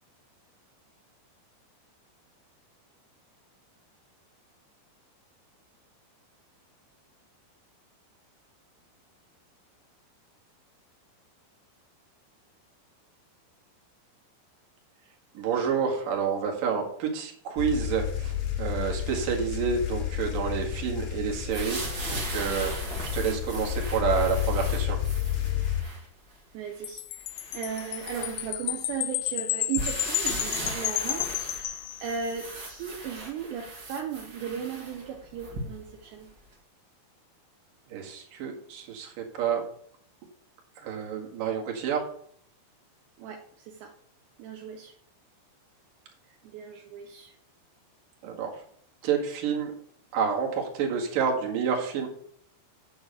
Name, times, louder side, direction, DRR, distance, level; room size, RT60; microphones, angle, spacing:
voice 1, 15.3-21.8 22.1-25.0 37.9-39.6 40.8-42.1 48.2-48.5 49.0-49.7 50.1-52.1, right 6 dB, 55° right, 1 dB, 3.2 m, -29 dB
sound 1, 17.6-25.8, left 11 dB, 55° left, 1.5 m, -31 dB
sound 2, 21.5-26.1 26.7-26.8 27.3-28.9 29.8-35.9 36.5-36.6, right 2 dB, 35° right, 2.0 m, -38 dB
voice 2, 26.5-27.2 27.5-36.3 43.2-43.4 43.7-43.9 44.4-44.9 46.4-47.3, right 7 dB, 75° right, 2 dB, 3.1 m, -36 dB
Wind chime, 26.8-32.5, left 16 dB, 85° left, 2.9 m, -32 dB
8.6 x 7.2 x 6.7 m, 0.62 s
omnidirectional pair, 5.3 m